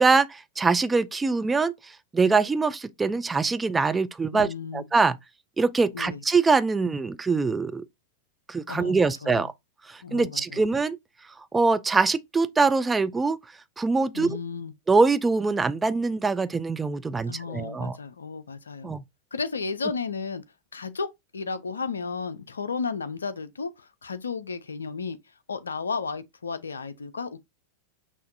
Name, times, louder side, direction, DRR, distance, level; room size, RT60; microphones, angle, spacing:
voice 1, 0.0-5.2 5.6-7.8 8.5-9.5 9.9-11.0 11.5-13.4 13.8-14.4 14.9-18.0 18.8-19.0, right 4 dB, 15° right, 0.3 m, -23 dB
voice 2, 4.3-4.8 5.9-6.2 8.7-8.9 9.2-9.4 10.0-10.6 14.1-14.7 17.3-18.9 19.3-20.4 20.7-25.2 25.5-27.4, left 5 dB, 75° left, 0.4 m, -33 dB
5.7 x 2.5 x 2.6 m
figure-of-eight pair, 90°, 0 cm